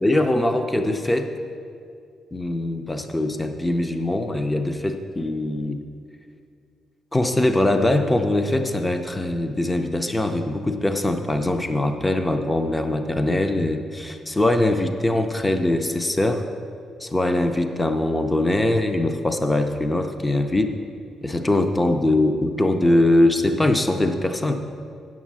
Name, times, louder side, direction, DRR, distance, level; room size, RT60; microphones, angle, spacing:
voice 1, 0.0-1.3 2.3-5.8 7.1-16.5 17.0-20.7 21.2-24.5, left 1 dB, 10° left, 7 dB, 0.5 m, -22 dB
8.6 x 7.3 x 7.4 m, 2.4 s
cardioid pair, 165°, 0 cm